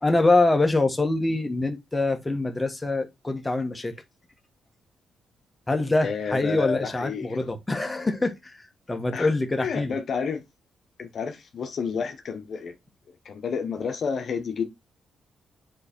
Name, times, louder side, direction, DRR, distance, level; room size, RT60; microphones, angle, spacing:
voice 1, 0.0-3.9 5.7-9.9, left 2 dB, 15° left, 1.4 m, -24 dB
voice 2, 6.0-7.5 9.1-9.3 9.6-10.4 11.0-12.7 13.1-14.6, left 6 dB, 55° left, 1.0 m, -30 dB
7.8 x 3.3 x 4.3 m
cardioid pair, 90°, 0 cm